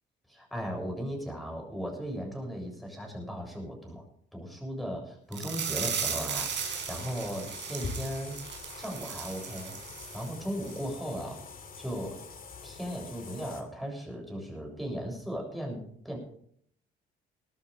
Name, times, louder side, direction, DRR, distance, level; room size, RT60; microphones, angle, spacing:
voice 1, 0.3-4.0 4.3-8.4 8.7-9.8 10.1-11.4 11.8-12.2 12.6-16.2, equal, ahead, 1 dB, 7.4 m, -37 dB
sound 1, 5.3-10.3 10.6-10.8 11.2-11.3, right 7 dB, 65° right, 4.8 m, -36 dB
sound 2, 6.3-13.6, left 4 dB, 45° left, 2.5 m, -45 dB
20.0 x 13.0 x 3.5 m, 0.64 s
cardioid pair, 90°, 20 cm